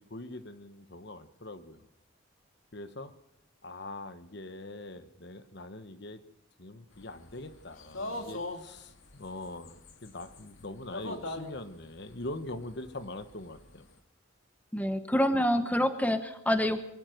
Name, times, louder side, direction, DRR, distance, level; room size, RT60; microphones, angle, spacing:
voice 1, 0.0-1.9 2.7-3.1 3.6-6.2 6.6-13.9, left 2 dB, 55° left, 11 dB, 1.2 m, -43 dB
sound 1, 7.0-13.8, left 2 dB, 75° left, 2.3 m, -41 dB
voice 2, 14.7-16.8, equal, 10° left, 9 dB, 1.1 m, -27 dB
23.0 x 14.5 x 7.9 m, 0.78 s
head